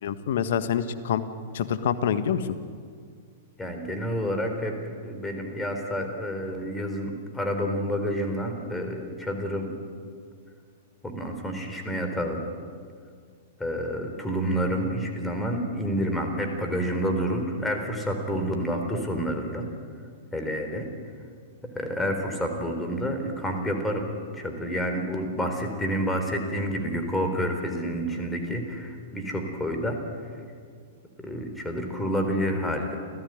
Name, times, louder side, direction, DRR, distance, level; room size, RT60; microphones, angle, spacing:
voice 1, 0.0-1.2 1.5-2.6, left 8 dB, 60° left, 12 dB, 1.4 m, -26 dB
voice 2, 3.6-4.8 5.0-9.7 11.0-12.4 13.6-19.7 20.3-20.8 21.7-24.1 24.3-30.0 31.2-33.0, equal, 10° left, 4 dB, 4.1 m, -29 dB
28.5 x 15.0 x 9.3 m, 2.1 s
figure-of-eight pair, 100°, 0 cm